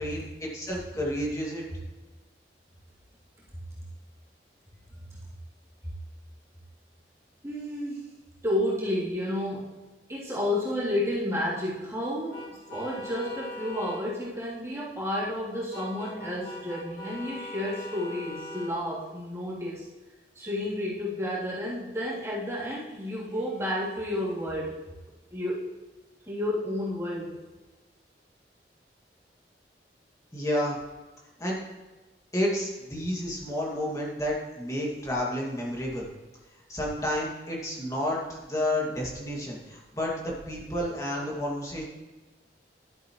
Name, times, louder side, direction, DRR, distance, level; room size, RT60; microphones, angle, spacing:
voice 1, 0.0-1.6 30.3-30.8 31.4-31.6 32.3-36.1 36.7-41.8, left 1 dB, 20° left, -3 dB, 2.3 m, -30 dB
voice 2, 7.4-8.0 8.4-9.8 10.1-19.8 20.3-24.8 25.3-25.7 26.3-27.4, left 1 dB, 15° right, -9 dB, 3.3 m, -31 dB
sound 1, 12.3-14.0 15.7-18.7, left 1 dB, 80° left, 3.3 m, -40 dB
12.0 x 10.5 x 3.2 m, 1.2 s
head